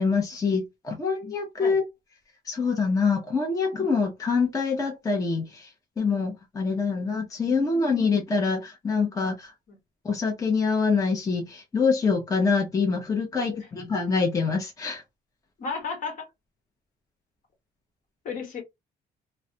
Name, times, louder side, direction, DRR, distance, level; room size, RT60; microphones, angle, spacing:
voice 1, 0.0-1.8 2.5-5.7 6.0-9.5 10.0-15.0, left 4 dB, 20° left, 0.7 m, -25 dB
voice 2, 15.6-16.3 18.2-18.6, left 5 dB, 50° left, 1.2 m, -33 dB
2.3 x 2.1 x 2.6 m
cardioid pair, 110°, 17 cm